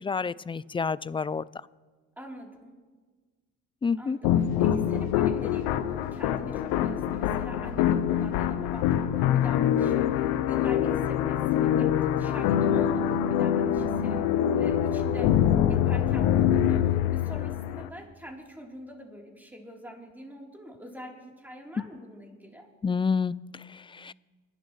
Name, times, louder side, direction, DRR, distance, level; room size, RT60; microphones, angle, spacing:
voice 1, 0.0-1.4 3.8-4.2 22.8-24.1, left 5 dB, 15° left, 20 dB, 0.3 m, -29 dB
voice 2, 2.2-2.8 4.0-4.3 4.6-15.3 15.7-22.7, equal, 5° right, -1 dB, 3.5 m, -44 dB
sound 1, 4.2-17.9, left 10 dB, 90° left, 0.7 m, -25 dB
26.5 x 11.5 x 3.2 m, 1.4 s
supercardioid pair, 65°, 33 cm